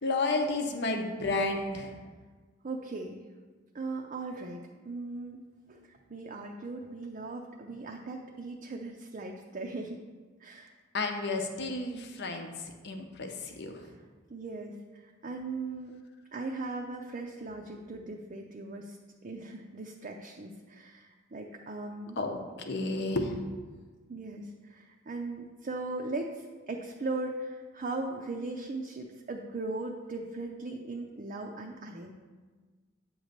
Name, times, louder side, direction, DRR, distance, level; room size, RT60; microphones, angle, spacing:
voice 1, 0.0-1.9 10.9-12.5 12.8-13.9 22.2-23.4, left 2 dB, 60° left, 4 dB, 0.8 m, -31 dB
voice 2, 2.6-3.2 3.7-5.4 5.7-10.0 10.4-10.7 13.8-13.9 14.3-15.9 16.3-19.0 19.2-22.2 24.1-32.1, right 2 dB, 40° right, 1 dB, 0.5 m, -38 dB
8.8 x 3.1 x 6.5 m, 1.4 s
head